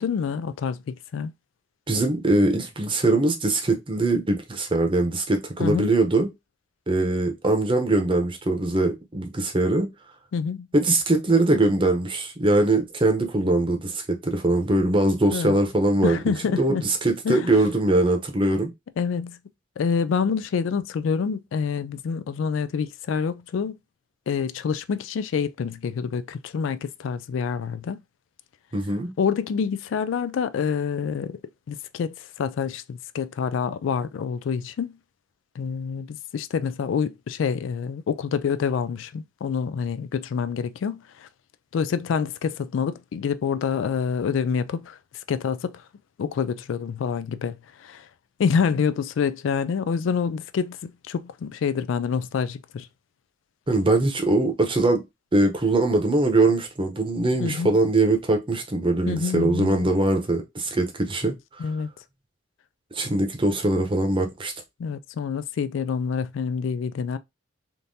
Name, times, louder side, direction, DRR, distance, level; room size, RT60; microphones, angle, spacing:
voice 1, 0.0-1.3 5.6-5.9 10.3-10.7 15.3-15.5 16.0-16.8 17.2-17.5 19.0-19.4 19.8-23.7 24.3-28.0 29.2-31.4 31.7-34.9 35.6-41.0 41.7-45.0 45.3-45.8 46.2-47.5 47.8-48.0 48.4-52.9 57.4-57.7 59.1-59.8 61.6-61.9 64.8-67.2, left 6 dB, 85° left, 0.3 m, -27 dB
voice 2, 1.9-6.3 6.9-9.9 10.7-16.2 16.6-18.7 28.7-29.1 53.7-55.0 55.3-61.4 62.9-64.5, right 2 dB, 25° right, 0.7 m, -22 dB
3.5 x 2.7 x 2.6 m
head